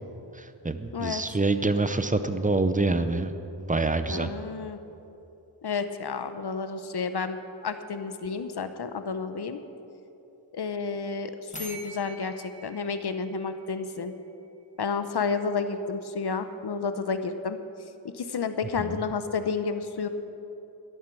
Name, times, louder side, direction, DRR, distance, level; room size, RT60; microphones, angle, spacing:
voice 1, 0.3-3.3 3.6-4.3 18.9-19.0, right 3 dB, 15° right, 10 dB, 0.6 m, -26 dB
voice 2, 4.1-4.8 5.6-9.6 10.5-14.1 14.8-17.6 18.1-20.1, left 5 dB, 55° left, 9 dB, 0.9 m, -31 dB
sound 1, 11.5-14.3, right 1 dB, 15° left, 1.5 m, -44 dB
12.5 x 11.0 x 6.1 m, 2.8 s
wide cardioid pair, 85°, 47 cm